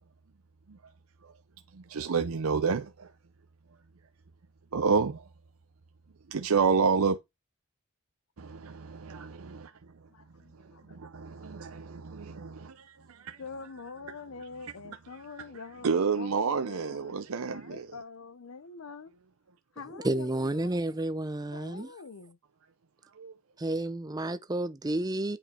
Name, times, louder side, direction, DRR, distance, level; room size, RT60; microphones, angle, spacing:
voice 1, 1.7-3.1 4.7-5.3 6.3-7.2 8.4-9.9 10.6-13.4 14.2-18.0 23.1-23.3, right 5 dB, 85° right, 0.6 m, -30 dB
voice 2, 10.1-11.0 13.4-17.2 17.5-19.1 19.8-20.8 21.5-22.4, left 4 dB, 75° left, 0.7 m, -45 dB
voice 3, 19.9-21.9 23.6-25.4, right 1 dB, 20° right, 0.6 m, -31 dB
8.7 x 4.9 x 4.4 m
head